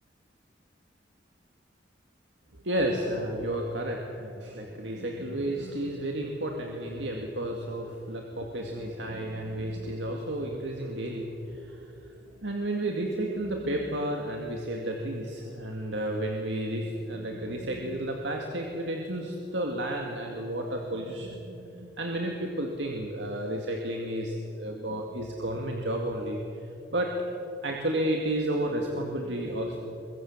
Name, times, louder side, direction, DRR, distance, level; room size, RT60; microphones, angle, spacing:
voice 1, 2.6-11.9 12.4-26.4 26.9-27.1 27.6-29.8, right 1 dB, 75° right, 1 dB, 2.2 m, -32 dB
23.5 x 21.5 x 7.4 m, 2.7 s
head